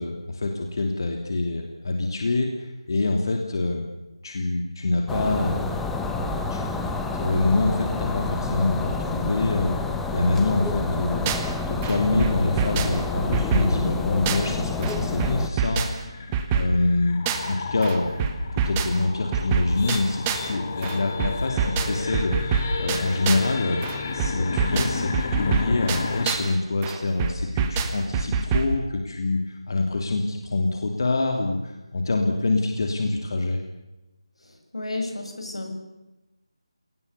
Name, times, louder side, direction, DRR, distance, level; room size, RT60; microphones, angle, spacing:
voice 1, 0.0-3.8 4.2-5.6 6.2-9.8 10.1-11.3 11.7-17.2 17.5-18.1 18.5-23.8 24.1-33.6, left 2 dB, 45° left, 3 dB, 3.0 m, -25 dB
sound 1, 5.1-15.5, left 3 dB, 5° left, 0.9 m, -29 dB
sound 2, 10.7-11.5 11.8-14.6 14.8-17.6 17.8-20.5 20.8-23.5 23.8-26.5 26.8-28.8, right 5 dB, 10° right, 1.2 m, -27 dB
sound 3, 14.7-26.3, left 4 dB, 30° left, 1.8 m, -33 dB
voice 2, 34.4-35.7, left 2 dB, 85° left, 4 dB, 7.3 m, -32 dB
29.5 x 19.0 x 7.0 m, 1.0 s
figure-of-eight pair, 170°, 3 cm